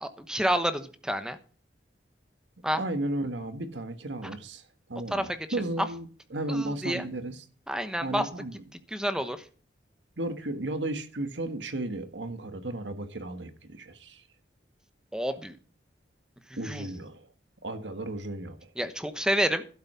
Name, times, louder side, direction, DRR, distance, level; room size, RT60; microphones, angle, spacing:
voice 1, 0.0-1.4 2.6-2.8 5.1-5.3 6.5-7.0 7.7-8.3 8.9-9.4 15.1-15.6 16.7-16.9 18.8-19.7, equal, 5° right, 1.0 m, -29 dB
voice 2, 2.8-4.6 4.9-7.5 8.0-8.6 10.2-14.2 16.6-17.3 17.6-18.7, right 1 dB, 85° right, 1.6 m, -34 dB
12.0 x 8.0 x 5.6 m
head